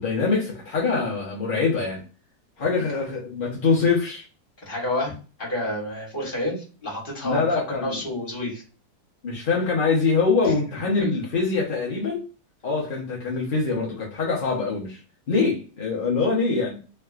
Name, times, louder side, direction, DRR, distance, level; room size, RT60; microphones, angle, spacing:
voice 1, 0.0-2.0 2.6-4.2 7.2-8.0 9.2-12.2 12.6-15.0 15.3-16.8, left 4 dB, 50° left, 0.6 m, -24 dB
voice 2, 4.7-5.1 5.4-8.6 10.4-10.5 11.0-11.1, left 1 dB, 35° left, 1.3 m, -29 dB
3.2 x 2.7 x 2.3 m
omnidirectional pair, 1.9 m